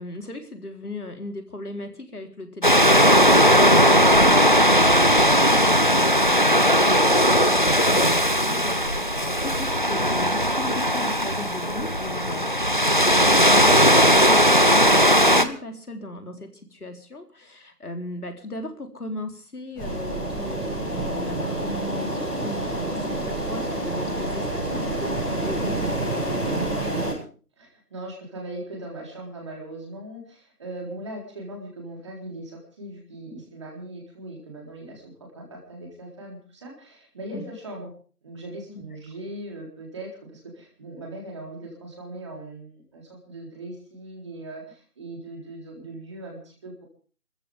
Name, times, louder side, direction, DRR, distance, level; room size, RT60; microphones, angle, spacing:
voice 1, 0.0-27.1 37.3-37.5 38.7-38.8, left 2 dB, 70° left, 5 dB, 3.9 m, -37 dB
sound 1, 2.6-15.4, equal, 30° left, 0.8 m, -18 dB
sound 2, 19.8-27.1, right 1 dB, 5° left, 2.9 m, -28 dB
voice 2, 27.6-37.9 38.2-46.9, right 1 dB, 20° right, -1 dB, 4.0 m, -39 dB
27.5 x 14.5 x 3.6 m, 0.40 s
figure-of-eight pair, 170°, 47 cm